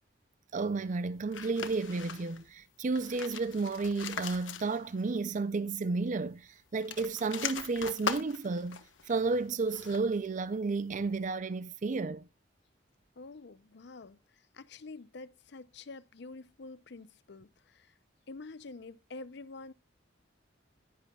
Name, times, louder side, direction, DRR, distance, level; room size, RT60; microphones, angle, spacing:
voice 1, 0.5-12.3, right 3 dB, 40° right, 0.4 m, -32 dB
sound 1, 1.3-2.5 2.8-5.1 5.4-5.5 6.7-10.2, left 6 dB, 80° left, 1.3 m, -41 dB
voice 2, 13.2-17.9 18.3-19.7, left 3 dB, 60° left, 0.6 m, -47 dB
10.5 x 10.5 x 2.3 m
head